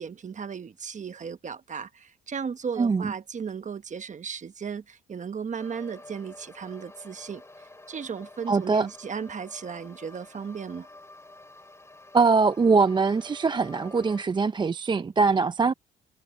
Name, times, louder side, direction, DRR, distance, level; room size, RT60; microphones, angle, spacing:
voice 1, 0.0-7.4 7.9-10.9, right 6 dB, 40° right, 1.1 m, -35 dB
voice 2, 2.8-3.1 8.5-8.9 12.1-15.7, right 4 dB, 25° right, 0.4 m, -22 dB
sound 1, 5.6-14.2, left 2 dB, 15° left, 3.5 m, -49 dB
cardioid pair, 90°, 20 cm